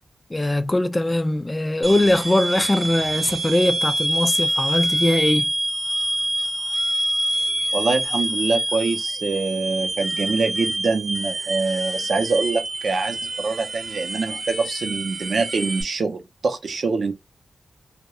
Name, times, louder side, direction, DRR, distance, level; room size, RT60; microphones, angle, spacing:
voice 1, 0.3-5.5, left 1 dB, 25° left, 0.3 m, -21 dB
sound 1, 1.8-15.8, right 1 dB, 30° right, 0.6 m, -26 dB
voice 2, 7.7-17.2, right 4 dB, 75° right, 0.5 m, -24 dB
2.2 x 2.1 x 2.9 m
cardioid pair, 45°, 0 cm